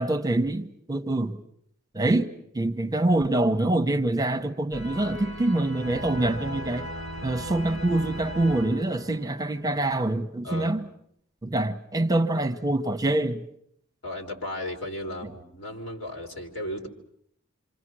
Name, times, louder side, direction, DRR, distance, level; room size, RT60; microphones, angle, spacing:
voice 1, 0.0-1.4 1.9-6.9 7.2-10.9 11.4-13.5, right 2 dB, 20° right, 1.0 m, -25 dB
sound 1, 4.7-9.6, equal, 90° left, 7.9 m, -37 dB
voice 2, 10.4-10.8 14.0-16.9, left 1 dB, 70° left, 3.9 m, -35 dB
28.0 x 25.5 x 6.3 m
head